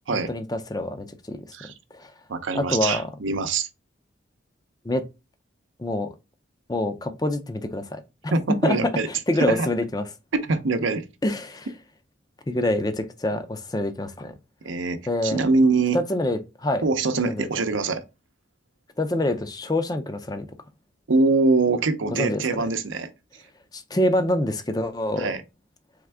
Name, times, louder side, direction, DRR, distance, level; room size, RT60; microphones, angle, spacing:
voice 1, 0.1-1.4 1.9-2.1 2.5-3.1 4.8-5.0 5.8-6.1 6.7-10.1 11.2-11.7 12.5-14.3 15.1-15.4 15.9-16.8 17.3-17.5 19.0-20.5 22.1-22.6 23.7-25.3, left 1 dB, 20° left, 0.4 m, -26 dB
voice 2, 2.3-3.7 8.3-9.1 9.5-9.7 10.3-11.0 14.6-16.0 16.8-18.0 21.1-23.1 25.2-25.4, right 3 dB, 85° right, 0.6 m, -23 dB
3.6 x 3.4 x 3.3 m
head